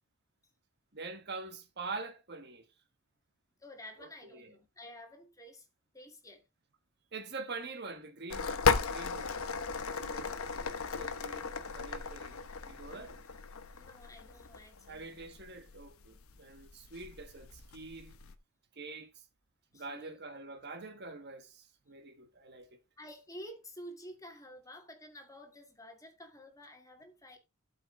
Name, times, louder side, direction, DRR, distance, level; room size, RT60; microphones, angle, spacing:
voice 1, 0.9-2.7 4.0-4.5 7.1-9.5 10.0-10.3 10.9-12.4 12.7-13.1 14.9-18.1 18.7-19.2 19.7-22.8, right 3 dB, 50° right, 1.6 m, -45 dB
voice 2, 3.6-5.7 5.9-6.4 12.9-13.2 13.7-15.0 19.7-20.2 23.0-27.4, equal, 15° left, 1.7 m, -50 dB
sound 1, 8.3-18.4, left 5 dB, 70° left, 1.0 m, -36 dB
12.0 x 5.6 x 3.7 m
head